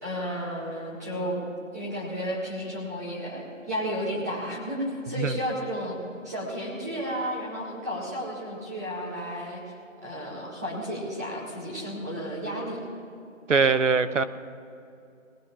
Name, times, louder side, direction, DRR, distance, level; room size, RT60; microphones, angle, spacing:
voice 1, 0.0-1.4 1.7-6.0 6.2-9.6 10.0-12.8, equal, 15° right, -7 dB, 1.9 m, -32 dB
voice 2, 13.5-14.2, right 5 dB, 65° right, 11 dB, 0.8 m, -22 dB
20.0 x 16.5 x 2.5 m, 2.6 s
figure-of-eight pair, 175°, 40 cm